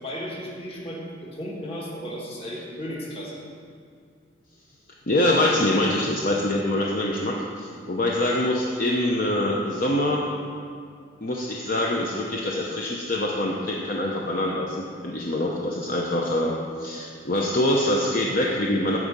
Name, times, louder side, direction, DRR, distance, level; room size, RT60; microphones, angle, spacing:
voice 1, 0.0-3.4, equal, 30° left, -3 dB, 1.6 m, -35 dB
voice 2, 5.1-10.3 11.2-19.0, left 1 dB, 45° left, -2 dB, 0.8 m, -24 dB
13.5 x 4.8 x 5.3 m, 2.3 s
head